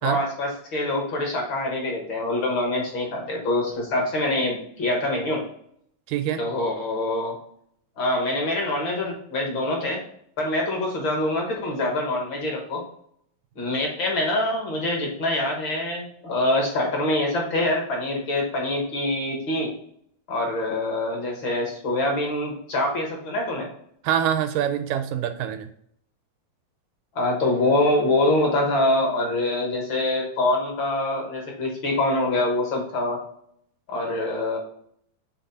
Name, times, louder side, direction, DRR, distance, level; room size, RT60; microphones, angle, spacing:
voice 1, 0.0-5.4 6.4-7.3 8.0-10.0 10.4-12.8 13.5-19.7 20.3-23.7 27.1-33.2 33.9-34.6, left 1 dB, 60° left, 0 dB, 1.3 m, -25 dB
voice 2, 6.1-6.4 24.0-25.7, right 10 dB, 80° right, 9 dB, 2.0 m, -25 dB
7.1 x 3.7 x 4.0 m, 0.67 s
omnidirectional pair, 4.0 m